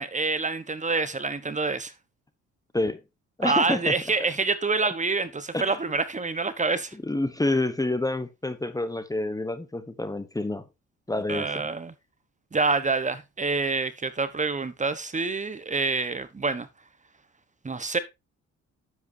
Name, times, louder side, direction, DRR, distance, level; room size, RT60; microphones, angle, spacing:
voice 1, 0.0-1.9 3.4-7.0 11.3-11.9 12.5-16.7 17.6-18.0, right 3 dB, 25° right, 1.2 m, -27 dB
voice 2, 3.4-4.0 5.5-5.8 7.0-10.7 11.1-11.6, left 2 dB, 10° left, 1.1 m, -28 dB
10.5 x 7.8 x 2.8 m
cardioid pair, 90°, 30 cm